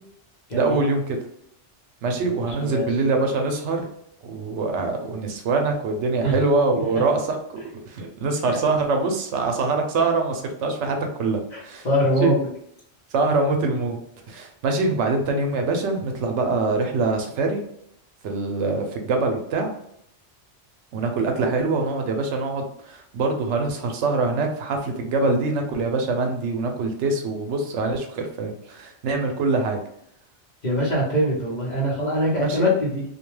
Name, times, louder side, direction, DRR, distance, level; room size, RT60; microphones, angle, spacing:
voice 1, 0.5-1.2 2.0-3.9 4.2-7.6 7.9-11.9 12.2-12.4 13.1-14.0 14.3-17.6 18.2-19.7 20.9-29.8 32.4-32.7, right 3 dB, 80° right, 4 dB, 0.9 m, -24 dB
voice 2, 11.5-12.5 30.6-33.0, equal, 45° left, -5 dB, 0.8 m, -23 dB
2.4 x 2.2 x 3.1 m, 0.72 s
omnidirectional pair, 1.2 m